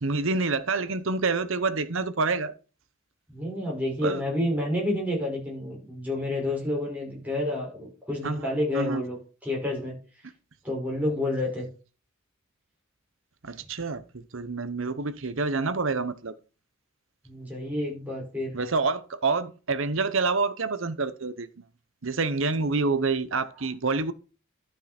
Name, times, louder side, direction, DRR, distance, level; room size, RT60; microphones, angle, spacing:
voice 1, 0.0-2.5 4.0-4.2 8.2-9.0 13.4-16.3 18.5-21.5 22.0-24.1, right 3 dB, 65° right, 0.9 m, -27 dB
voice 2, 3.3-9.2 9.4-10.0 10.6-11.6 17.3-18.5, left 1 dB, 5° right, 5.4 m, -29 dB
12.0 x 6.4 x 4.4 m
head